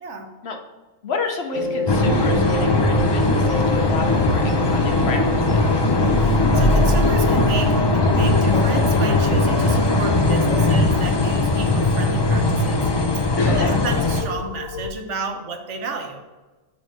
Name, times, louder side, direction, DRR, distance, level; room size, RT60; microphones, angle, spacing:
voice 1, 0.0-0.3 6.1-12.9 13.2-16.2, right 3 dB, 70° right, 4 dB, 1.1 m, -32 dB
voice 2, 1.0-5.6 8.3-8.4 12.9-13.0 13.5-13.7, left 4 dB, 60° left, 4 dB, 1.0 m, -30 dB
sound 1, 1.5-10.7, equal, 25° right, 1.3 m, -27 dB
sound 2, 1.9-14.2, left 2 dB, 35° left, 0.4 m, -19 dB
sound 3, 2.6-14.9, left 6 dB, 90° left, 1.0 m, -34 dB
6.4 x 3.5 x 6.0 m, 1.2 s
omnidirectional pair, 1.3 m